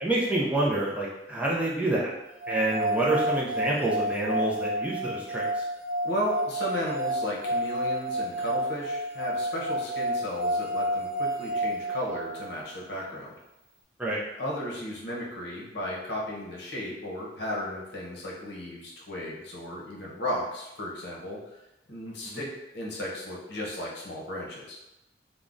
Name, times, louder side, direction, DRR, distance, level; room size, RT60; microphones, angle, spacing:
voice 1, 0.0-2.1 2.5-5.6 14.0-14.2 22.1-22.4, right 2 dB, 5° right, -5 dB, 0.4 m, -27 dB
sound 1, 2.4-12.5, right 1 dB, 60° right, 0.7 m, -30 dB
voice 2, 6.0-13.3 14.4-21.4 21.9-22.5 22.7-24.8, left 1 dB, 60° left, -4 dB, 0.7 m, -34 dB
3.6 x 2.1 x 2.5 m, 0.92 s
head